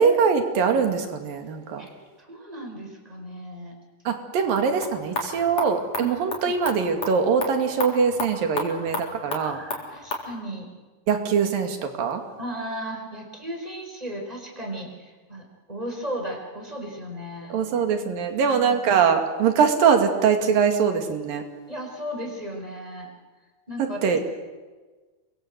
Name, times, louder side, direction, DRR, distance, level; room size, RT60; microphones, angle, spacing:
voice 1, 0.0-1.9 4.1-9.6 11.1-12.2 17.5-21.4 24.0-24.2, right 6 dB, 90° right, 5 dB, 4.1 m, -22 dB
voice 2, 2.2-3.7 6.0-6.1 9.4-10.7 12.4-17.6 18.4-18.8 21.7-23.1 23.7-24.2, equal, 10° right, 2 dB, 4.8 m, -35 dB
sound 1, 4.4-10.3, left 3 dB, 50° left, 5.0 m, -34 dB
29.0 x 23.0 x 8.1 m, 1.3 s
omnidirectional pair, 3.9 m